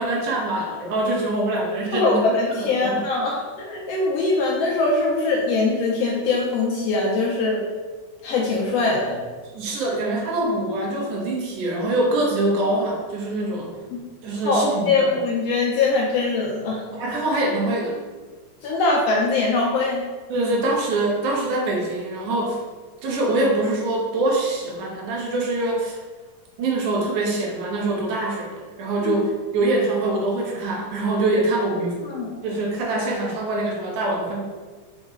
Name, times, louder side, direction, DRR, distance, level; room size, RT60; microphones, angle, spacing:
voice 1, 0.0-2.2 2.6-3.1 9.5-13.7 14.2-15.1 16.9-18.0 20.3-22.6 23.0-26.0 26.6-32.0 32.4-34.4, right 2 dB, 80° right, -2 dB, 2.7 m, -24 dB
voice 2, 1.9-7.6 8.2-9.2 13.9-14.0 14.4-16.8 18.6-20.1 29.0-29.1 32.0-32.3, left 3 dB, 75° left, -2 dB, 1.6 m, -22 dB
5.2 x 4.9 x 3.7 m, 1.4 s
omnidirectional pair, 3.5 m